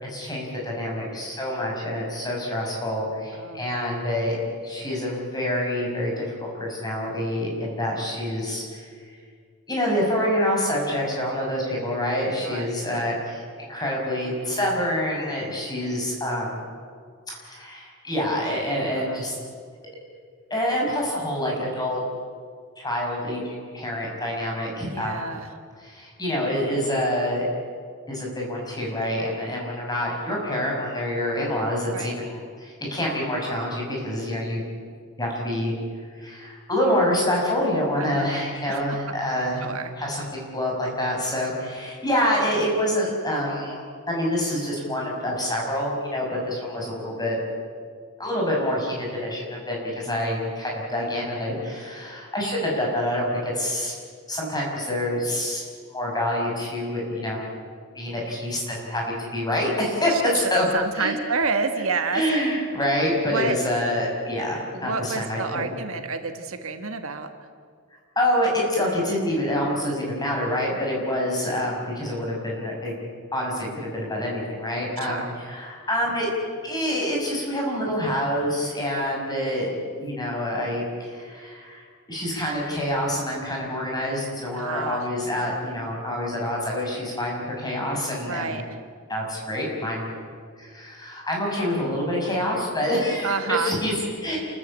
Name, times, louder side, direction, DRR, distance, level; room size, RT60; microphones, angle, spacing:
voice 1, 0.0-4.4 4.6-9.2 9.7-16.6 17.3-19.4 20.5-22.0 22.8-25.4 25.8-27.4 28.1-34.6 35.2-35.7 36.2-39.7 39.9-47.4 48.2-53.9 54.3-55.6 55.9-57.5 57.9-60.7 61.0-61.1 62.1-65.6 68.2-72.9 73.3-76.3 76.6-88.6 89.1-90.2 90.6-94.4, left 1 dB, 20° left, -2 dB, 6.2 m, -27 dB
voice 2, 12.4-13.0 19.0-19.2 24.9-25.5 31.9-32.1 38.0-38.3 38.7-39.0 39.6-39.9 60.1-60.2 60.7-62.2 63.3-63.6 64.7-67.3 75.0-75.3 84.6-85.1 88.3-88.6 93.2-93.7 94.3-94.4, right 4 dB, 70° right, 7 dB, 1.5 m, -29 dB
28.5 x 14.5 x 8.7 m, 2.1 s
head